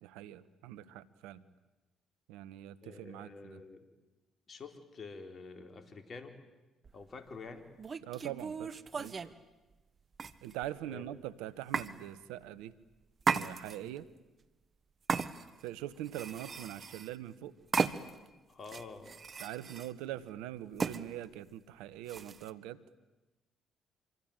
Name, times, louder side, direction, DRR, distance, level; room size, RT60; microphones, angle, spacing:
voice 1, 0.0-1.4 2.3-3.6 8.0-9.2 10.4-12.7 13.3-14.1 15.6-17.5 19.4-22.8, right 13 dB, 80° right, 16 dB, 1.2 m, -43 dB
voice 2, 2.8-3.9 4.5-6.4 6.9-7.6 10.9-11.1 13.7-13.9 18.5-19.1, left 4 dB, 45° left, 7 dB, 4.2 m, -48 dB
sound 1, 6.8-7.0 7.8-9.3 10.2-10.8 11.7-11.9 13.2-14.0 15.1-15.7 16.1-17.2 17.7-18.3 18.6-19.9 20.8-21.0 22.1-22.5, right 5 dB, 45° right, 1.4 m, -35 dB
26.5 x 24.5 x 9.1 m, 1.1 s
hypercardioid pair, 55°, 0 cm